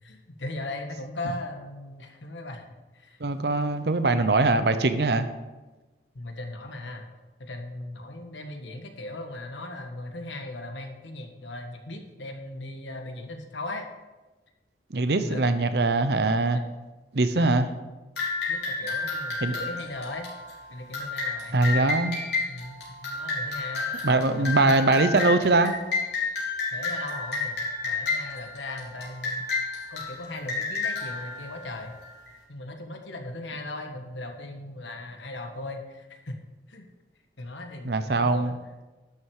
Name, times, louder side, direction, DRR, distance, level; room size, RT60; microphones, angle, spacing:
voice 1, 0.0-2.7 2.9-3.2 6.1-7.1 7.4-13.9 15.2-15.6 16.5-16.6 17.3-17.7 18.5-20.3 20.7-21.6 22.5-23.9 24.3-24.9 26.7-29.5 29.9-32.0 32.5-36.4 36.7-36.9 37.4-38.5, left 2 dB, 90° left, 4 dB, 1.4 m, -38 dB
voice 2, 3.2-5.3 14.9-16.6 17.1-17.7 19.4-19.6 21.5-22.2 24.0-25.7 37.8-38.5, right 2 dB, 65° right, 10 dB, 0.7 m, -22 dB
sound 1, 18.2-32.3, left 4 dB, 70° left, 3.7 m, -31 dB
11.5 x 6.3 x 4.8 m, 1.2 s
head